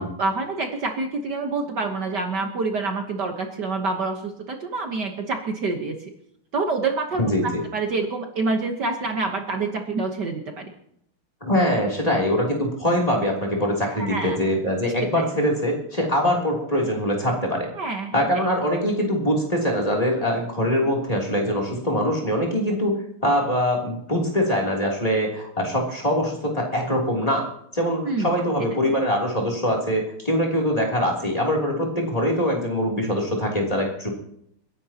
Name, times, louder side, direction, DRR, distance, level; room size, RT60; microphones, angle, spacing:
voice 1, 0.0-6.1 6.5-10.7 14.0-14.4 15.0-15.4 17.8-18.4 28.1-28.3, right 3 dB, 55° right, 3 dB, 1.7 m, -27 dB
voice 2, 7.2-7.6 11.4-17.7 18.1-22.9 23.2-34.1, equal, 15° left, -1 dB, 3.2 m, -23 dB
30.0 x 11.0 x 2.9 m, 0.73 s
omnidirectional pair, 2.4 m